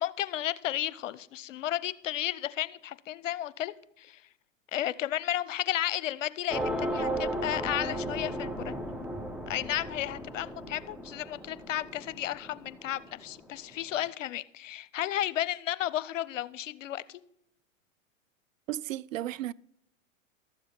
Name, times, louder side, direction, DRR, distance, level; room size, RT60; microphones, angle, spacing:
voice 1, 0.0-4.2 4.7-8.7 9.5-17.2, left 12 dB, 70° left, 0.7 m, -33 dB
sound 1, 6.5-13.3, right 1 dB, ahead, 0.6 m, -35 dB
voice 2, 18.7-19.5, right 13 dB, 75° right, 0.5 m, -34 dB
12.5 x 7.4 x 5.4 m
hypercardioid pair, 110°, 39 cm